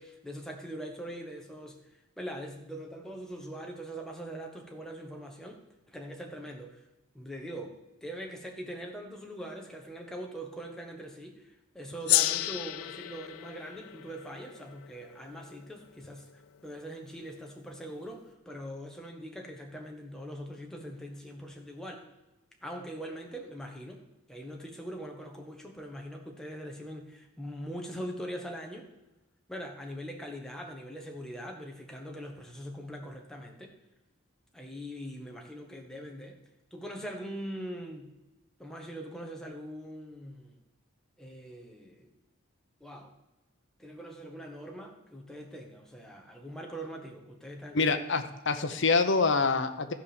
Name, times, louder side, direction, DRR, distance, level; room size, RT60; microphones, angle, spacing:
voice 1, 0.0-6.8 7.1-22.1 22.6-28.9 29.5-33.8 34.5-36.4 36.7-38.1 38.6-40.6 41.2-42.1 42.8-43.1 43.8-47.9, equal, ahead, 1 dB, 1.2 m, -42 dB
Gong, 12.1-16.8, left 15 dB, 75° left, 0.4 m, -32 dB
voice 2, 47.7-49.9, left 4 dB, 55° left, 8 dB, 0.8 m, -26 dB
13.5 x 4.9 x 7.0 m, 1.0 s
head